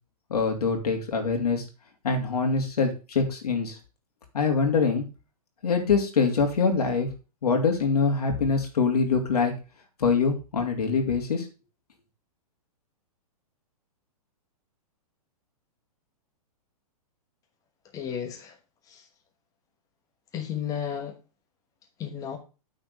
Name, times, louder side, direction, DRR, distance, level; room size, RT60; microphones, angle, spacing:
voice 1, 0.3-1.6 2.0-3.8 4.3-5.0 5.6-7.1 7.4-9.5 10.0-11.4, left 5 dB, 90° left, 4 dB, 2.7 m, -24 dB
voice 2, 17.9-18.6 18.9-19.1 20.3-21.1 22.0-22.4, left 8 dB, 15° left, 4 dB, 1.2 m, -33 dB
8.9 x 4.4 x 5.4 m, 0.32 s
hypercardioid pair, 150°, 19 cm